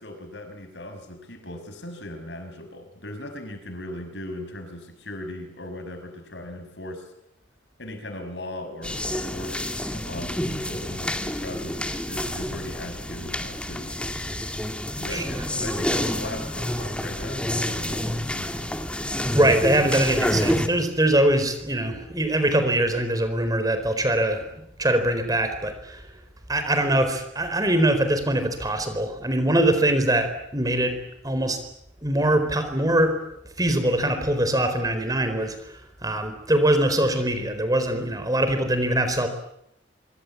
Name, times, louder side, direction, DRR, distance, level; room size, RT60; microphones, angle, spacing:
voice 1, 0.0-7.1 7.8-14.0 15.0-18.8, left 1 dB, 60° left, 8 dB, 5.8 m, -38 dB
sound 1, 8.8-20.7, left 1 dB, 5° left, 2.2 m, -28 dB
voice 2, 15.1-15.4 19.3-26.1 26.5-31.0 31.2-31.6 32.0-39.3, right 1 dB, 20° right, 9 dB, 4.4 m, -23 dB
25.5 x 25.5 x 8.6 m, 0.79 s
head